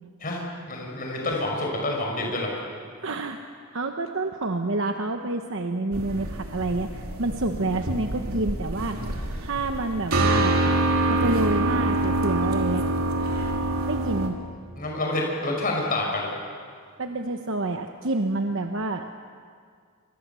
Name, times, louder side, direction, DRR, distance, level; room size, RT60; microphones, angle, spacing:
voice 1, 0.2-2.5 14.8-16.3, left 2 dB, 40° left, -1 dB, 5.5 m, -28 dB
voice 2, 3.0-3.4 3.7-9.0 9.4-10.6 11.1-12.9 13.9-14.4 17.0-19.1, right 2 dB, 60° right, 5 dB, 1.1 m, -28 dB
sound 1, 5.9-14.3, right 2 dB, 85° right, 3.0 m, -26 dB
28.5 x 25.0 x 7.0 m, 2.1 s
head